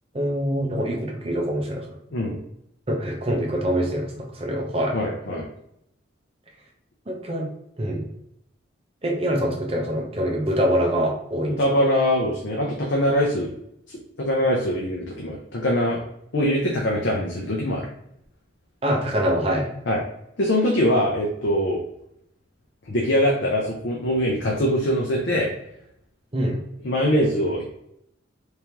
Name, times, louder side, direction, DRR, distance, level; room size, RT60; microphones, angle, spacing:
voice 1, 0.1-2.0 2.9-5.0 7.1-7.5 7.8-8.0 9.0-11.6 18.8-19.7 26.3-26.6, equal, 30° right, 0 dB, 0.7 m, -24 dB
voice 2, 4.9-5.5 11.6-13.5 14.2-16.0 16.3-17.8 19.9-20.0 20.4-21.8 22.9-25.5 26.8-27.6, equal, 70° left, -2 dB, 0.7 m, -22 dB
3.5 x 3.3 x 2.9 m, 0.75 s
head